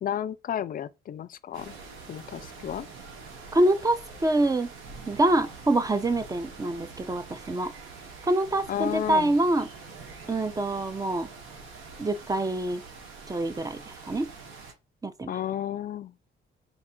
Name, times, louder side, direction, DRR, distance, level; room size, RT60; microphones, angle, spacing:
voice 1, 0.0-1.7 2.1-2.9 8.7-9.3 15.3-16.1, left 10 dB, 45° left, 0.4 m, -32 dB
sound 1, 1.5-14.7, right 4 dB, 90° right, 1.2 m, -45 dB
voice 2, 3.5-4.7 5.1-7.7 8.3-9.7 10.3-11.3 12.0-12.8 13.3-14.3 15.0-15.3, right 1 dB, 20° right, 0.4 m, -25 dB
4.2 x 2.4 x 4.3 m
cardioid pair, 90°, 20 cm